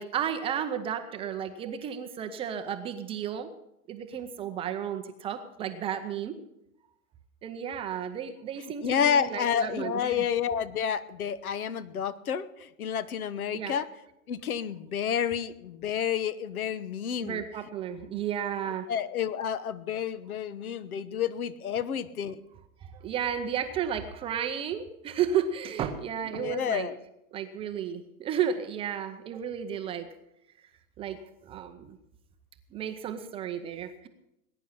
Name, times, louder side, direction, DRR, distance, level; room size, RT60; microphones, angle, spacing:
voice 1, 0.0-3.5 3.9-6.4 7.4-10.2 13.5-13.7 17.2-18.9 22.8-26.9 27.3-30.1 31.0-32.0 32.7-34.1, right 8 dB, 15° right, 7 dB, 0.5 m, -33 dB
voice 2, 8.8-13.9 14.3-17.4 18.1-18.2 18.9-22.4 26.3-27.0, left 8 dB, 75° left, 16 dB, 1.2 m, -30 dB
19.5 x 10.0 x 5.7 m, 0.85 s
hypercardioid pair, 135°, 43 cm